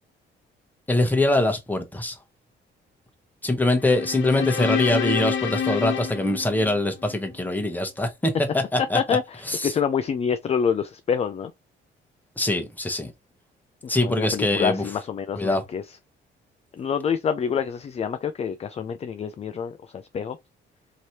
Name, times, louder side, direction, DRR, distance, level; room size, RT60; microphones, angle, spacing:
voice 1, 0.9-2.2 3.4-9.2 9.5-9.7 12.4-13.1 13.9-14.8 15.4-15.6, left 1 dB, 10° left, 0.9 m, -23 dB
sound 1, 3.8-7.2, left 8 dB, 70° left, 0.7 m, -28 dB
voice 2, 8.9-11.5 14.0-15.8 16.8-20.4, left 7 dB, 30° left, 0.3 m, -27 dB
3.1 x 2.8 x 2.8 m
cardioid pair, 90°, 20 cm